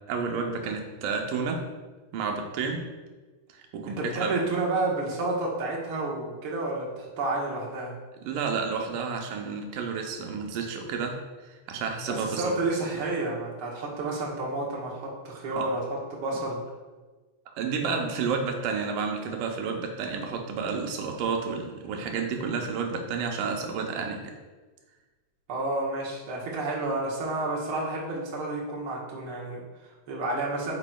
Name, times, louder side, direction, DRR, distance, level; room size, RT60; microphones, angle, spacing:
voice 1, 0.1-1.7 2.1-2.9 3.5-4.3 8.2-11.2 11.4-12.5 15.6-15.7 17.5-24.3, right 5 dB, 80° right, 3 dB, 2.4 m, -31 dB
voice 2, 3.9-7.9 12.1-16.6 25.5-30.8, right 2 dB, 55° right, -3 dB, 1.7 m, -30 dB
8.5 x 6.1 x 2.3 m, 1.3 s
omnidirectional pair, 3.9 m